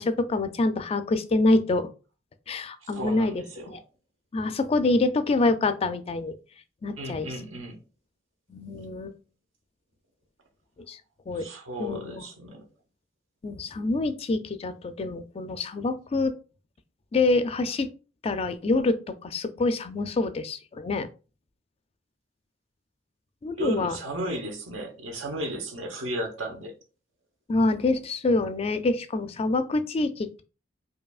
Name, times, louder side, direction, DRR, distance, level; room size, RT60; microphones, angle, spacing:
voice 1, 0.0-1.9 2.5-3.8 4.3-6.4 6.8-7.3 8.5-9.2 10.9-11.0 11.3-11.5 11.8-12.2 13.4-16.3 17.1-17.9 18.2-19.0 19.2-21.1 23.4-24.0 27.5-30.4, left 2 dB, 30° left, 0.3 m, -26 dB
voice 2, 2.9-3.8 7.0-7.8 11.3-12.6 23.6-26.8, right 1 dB, 85° right, 1.0 m, -34 dB
4.8 x 2.6 x 2.3 m
head